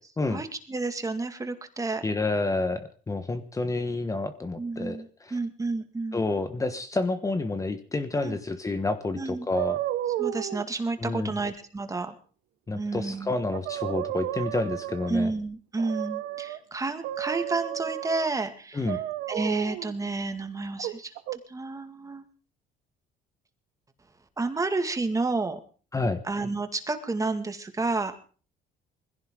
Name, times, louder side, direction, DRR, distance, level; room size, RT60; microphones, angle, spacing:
voice 1, 0.3-2.0 4.6-6.3 8.2-8.4 9.1-9.5 10.2-12.2 12.7-13.3 15.1-19.0 19.3-22.2 24.4-25.6 26.2-28.2, right 3 dB, 20° right, 7 dB, 2.1 m, -30 dB
voice 2, 2.0-5.3 6.1-9.8 11.0-11.3 12.7-15.3 18.7-19.0 25.9-26.2, left 3 dB, 20° left, 9 dB, 1.2 m, -29 dB
sound 1, 9.5-10.6 13.1-13.2 13.5-15.2 15.8-16.6 17.0-18.4 18.9-19.9 20.8-21.4, right 14 dB, 90° right, 1.0 m, -32 dB
21.5 x 16.0 x 3.8 m, 0.40 s
cardioid pair, 110°, 17 cm